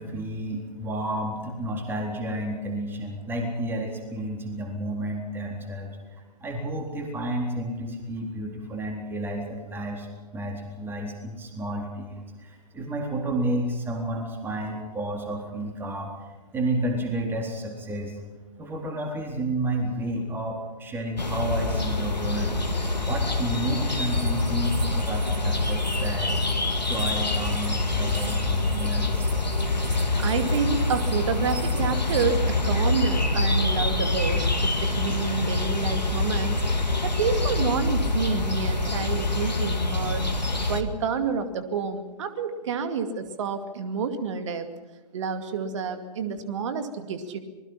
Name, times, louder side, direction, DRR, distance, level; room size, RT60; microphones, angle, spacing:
voice 1, 0.0-10.1 10.3-16.1 16.5-18.2 18.6-22.6 23.0-26.4 26.9-29.3, right 1 dB, 10° right, 2 dB, 3.8 m, -31 dB
sound 1, 21.2-40.8, left 2 dB, 85° left, 2.3 m, -25 dB
sound 2, 23.9-32.2, right 7 dB, 30° right, 3.5 m, -46 dB
voice 2, 30.2-36.6 37.0-40.3 40.7-44.7 45.1-47.4, right 6 dB, 45° right, 8 dB, 2.4 m, -29 dB
26.0 x 21.0 x 5.8 m, 1.2 s
figure-of-eight pair, 125°, 21 cm